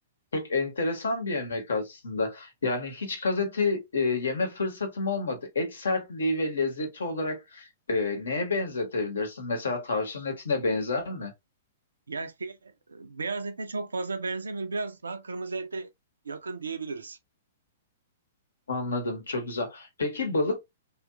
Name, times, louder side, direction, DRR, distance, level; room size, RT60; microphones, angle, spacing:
voice 1, 0.3-11.3 18.7-20.6, left 3 dB, 65° left, 0.8 m, -29 dB
voice 2, 12.1-15.9 16.2-17.2, right 3 dB, 70° right, 0.4 m, -34 dB
2.8 x 2.3 x 2.3 m
figure-of-eight pair, 110°, 0 cm